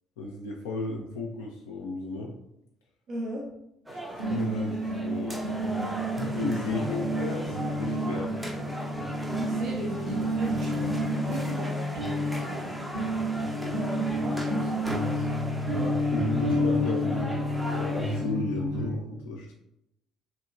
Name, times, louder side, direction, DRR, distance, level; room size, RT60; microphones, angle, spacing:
voice 1, 0.2-2.3 3.9-5.5 6.1-8.5 13.1-13.3 13.6-13.8 15.8-19.5, left 3 dB, 70° left, -1 dB, 0.3 m, -35 dB
voice 2, 3.1-3.4 9.3-10.9 11.4-12.7 13.8-15.3, right 1 dB, 50° right, -3 dB, 0.5 m, -38 dB
sound 1, 3.9-18.2, right 1 dB, 5° right, 0.5 m, -38 dB
sound 2, 4.2-18.9, equal, 70° right, 1.1 m, -30 dB
2.9 x 2.8 x 2.3 m, 0.81 s
figure-of-eight pair, 50°, 0 cm